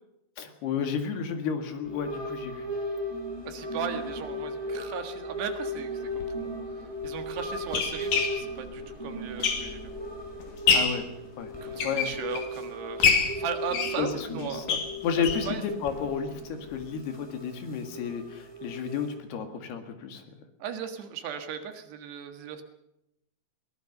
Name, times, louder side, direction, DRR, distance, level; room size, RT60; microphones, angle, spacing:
voice 1, 0.4-2.7 10.7-11.1 11.4-11.5 11.8-12.1 14.0-14.8 15.0-20.2, left 6 dB, 70° left, 7 dB, 3.8 m, -32 dB
sound 1, 1.8-19.1, equal, 5° left, 5.7 m, -37 dB
voice 2, 3.5-6.5 7.0-9.9 11.6-14.8 15.5-15.6 20.6-22.6, right 7 dB, 75° right, 7 dB, 3.7 m, -37 dB
sound 2, 6.1-6.2 7.0-10.0 10.4-11.1 11.6-12.6 13.0-15.5 15.9-16.0 16.3-16.4 16.7-16.8, left 5 dB, 50° left, 3.7 m, -27 dB
22.0 x 18.5 x 6.7 m, 0.84 s
omnidirectional pair, 5.0 m